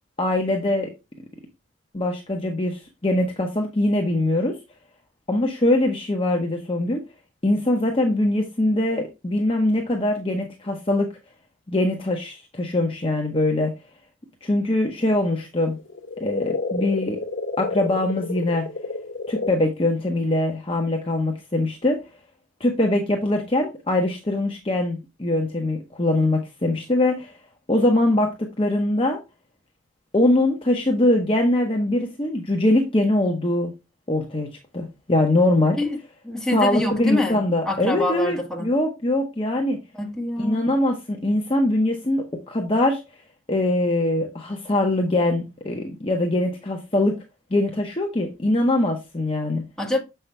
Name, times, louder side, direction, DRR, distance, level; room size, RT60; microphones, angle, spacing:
voice 1, 0.2-0.9 1.9-4.6 5.3-7.0 7.4-11.1 11.7-13.7 14.4-15.8 16.2-17.2 17.6-18.6 19.3-22.0 22.6-27.3 27.7-29.2 30.1-33.7 34.1-34.5 34.7-35.8 36.5-39.8 40.4-43.0 43.5-47.2 47.5-49.6, left 1 dB, 25° left, 0.9 m, -22 dB
sound 1, 15.7-19.5, left 3 dB, 75° left, 1.2 m, -30 dB
voice 2, 36.2-37.4 37.6-38.7 39.9-40.7 49.8-50.0, left 2 dB, 5° left, 1.6 m, -25 dB
7.0 x 5.6 x 3.3 m
head